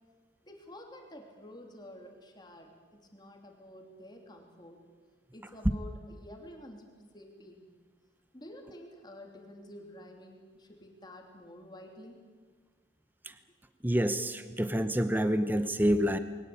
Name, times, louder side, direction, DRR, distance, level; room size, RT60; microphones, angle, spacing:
voice 1, 0.4-4.8 5.3-6.9 7.1-7.7 8.3-12.2, left 1 dB, 25° left, 2 dB, 3.1 m, -50 dB
voice 2, 13.8-16.2, equal, 10° right, 11 dB, 0.8 m, -27 dB
22.0 x 18.5 x 8.7 m, 1.5 s
head